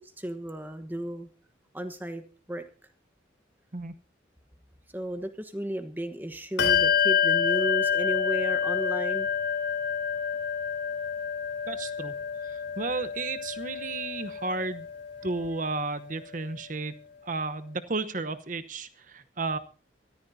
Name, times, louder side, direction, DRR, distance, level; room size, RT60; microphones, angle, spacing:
voice 1, 0.2-1.3 1.7-2.2 2.5-2.6 4.9-9.3, right 1 dB, 10° right, 8 dB, 1.1 m, -34 dB
Bell, 6.6-16.6, left 7 dB, 80° left, 2.9 m, -28 dB
voice 2, 11.7-12.1 12.4-14.9 15.2-19.6, right 3 dB, 45° right, 11 dB, 0.9 m, -33 dB
24.0 x 14.0 x 2.7 m, 0.38 s
head